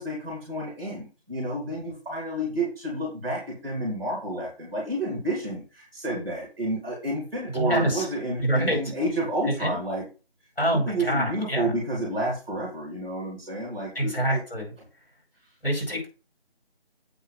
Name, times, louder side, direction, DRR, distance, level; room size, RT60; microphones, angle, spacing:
voice 1, 0.0-10.1 10.9-14.4, right 1 dB, 5° right, -4 dB, 2.8 m, -30 dB
voice 2, 7.5-8.1 8.4-8.8 9.4-9.8 10.6-11.7 13.9-14.7 15.6-16.1, right 1 dB, 65° left, 2 dB, 4.8 m, -26 dB
8.1 x 4.7 x 5.5 m, 0.31 s
figure-of-eight pair, 165°, 31 cm